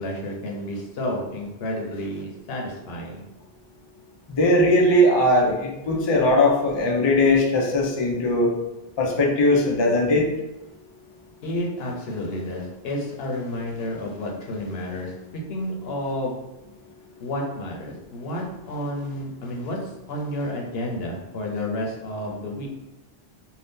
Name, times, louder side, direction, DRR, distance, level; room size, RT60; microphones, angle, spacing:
voice 1, 0.0-3.2 11.4-15.2 15.5-16.4 17.2-22.7, left 1 dB, 75° left, 0 dB, 0.9 m, -30 dB
voice 2, 4.3-8.5 9.0-10.3, left 1 dB, 40° left, -1 dB, 0.4 m, -19 dB
2.6 x 2.2 x 3.5 m, 0.96 s
omnidirectional pair, 1.0 m